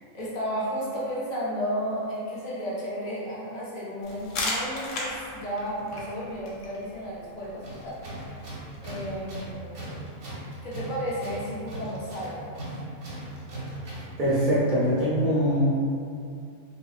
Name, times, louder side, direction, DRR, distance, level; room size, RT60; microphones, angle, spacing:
voice 1, 0.1-8.4 8.8-9.8 10.6-12.4, equal, 45° left, -7 dB, 0.6 m, -33 dB
sound 1, 4.0-9.5, left 2 dB, 75° left, 0.9 m, -37 dB
Tools, 7.6-14.2, right 1 dB, 85° right, 1.1 m, -38 dB
voice 2, 14.2-15.8, equal, 55° right, -9 dB, 0.6 m, -23 dB
2.9 x 2.3 x 2.4 m, 2.4 s
omnidirectional pair, 1.3 m